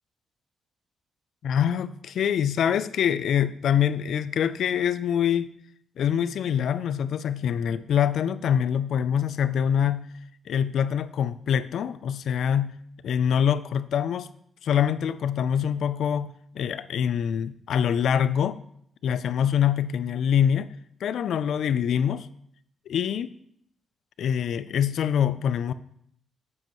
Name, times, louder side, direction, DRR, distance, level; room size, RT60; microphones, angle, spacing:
voice 1, 1.4-5.5 6.0-10.1 10.5-12.7 13.0-14.3 14.6-18.6 19.0-20.7 21.0-22.3 22.9-23.3 24.2-25.7, left 8 dB, 65° left, 15 dB, 0.4 m, -25 dB
9.4 x 7.7 x 3.0 m, 0.69 s
wide cardioid pair, 165°, 0 cm